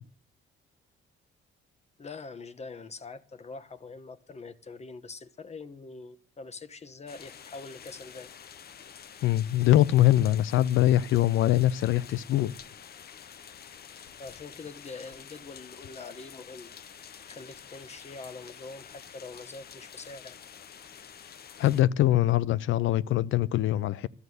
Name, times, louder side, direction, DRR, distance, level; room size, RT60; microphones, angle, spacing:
voice 1, 2.0-8.3 14.2-16.7 17.3-20.4, left 4 dB, 35° left, 1.2 m, -44 dB
sound 1, 7.1-21.8, left 8 dB, 50° left, 0.8 m, -48 dB
voice 2, 9.2-12.5 21.6-24.1, left 13 dB, 80° left, 0.5 m, -23 dB
12.5 x 8.0 x 9.4 m
cardioid pair, 90°, 20 cm